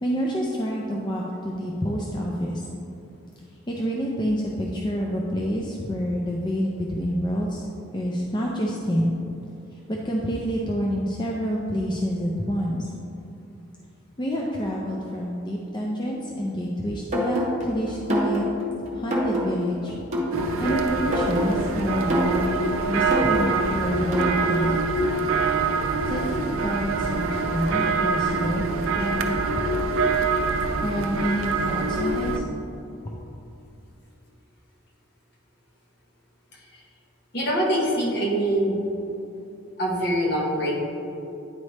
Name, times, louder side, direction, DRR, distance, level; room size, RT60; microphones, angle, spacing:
voice 1, 0.0-2.6 3.7-7.7 7.9-9.1 9.9-12.9 14.2-18.4 18.9-20.0 20.6-24.9 26.0-29.4 30.8-32.4 33.0-33.1, equal, 20° left, -2 dB, 0.4 m, -28 dB
sound 1, 17.1-24.9, equal, 35° right, 1.0 m, -27 dB
Church bells somewhere, 20.3-32.4, right 4 dB, 80° right, 0.5 m, -25 dB
voice 2, 36.5-36.8 37.3-38.8 39.8-40.8, right 1 dB, 50° left, -3 dB, 1.2 m, -24 dB
9.6 x 4.1 x 3.3 m, 2.8 s
head